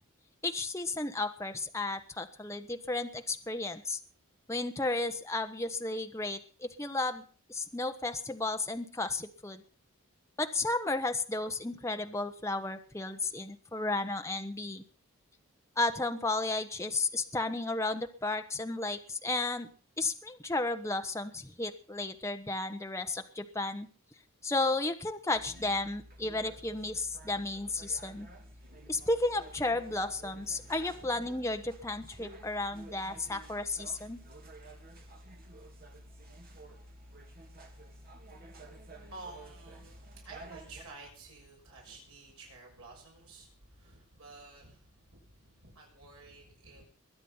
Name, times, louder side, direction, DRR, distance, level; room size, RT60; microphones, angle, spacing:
voice 1, 0.4-4.0 4.5-9.6 10.4-14.8 15.8-19.7 20.0-23.9 24.4-28.3 28.9-34.2, left 2 dB, 15° left, 5 dB, 1.1 m, -33 dB
sound 1, 25.3-40.8, right 1 dB, 40° right, 2.9 m, -51 dB
voice 2, 39.1-46.9, right 3 dB, 75° right, 0 dB, 6.2 m, -51 dB
21.5 x 9.6 x 5.6 m, 0.40 s
head